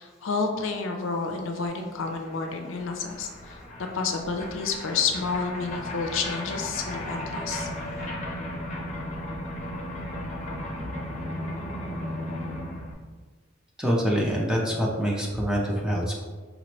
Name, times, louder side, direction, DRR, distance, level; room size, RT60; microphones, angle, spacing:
voice 1, 0.0-3.6 3.9-7.7, left 4 dB, 65° left, 4 dB, 0.5 m, -30 dB
sound 1, 1.8-1.9 2.1-12.9, left 1 dB, 35° left, 0.7 m, -35 dB
voice 2, 13.8-16.2, equal, 5° right, -3 dB, 0.5 m, -25 dB
5.1 x 3.0 x 3.0 m, 1.5 s
head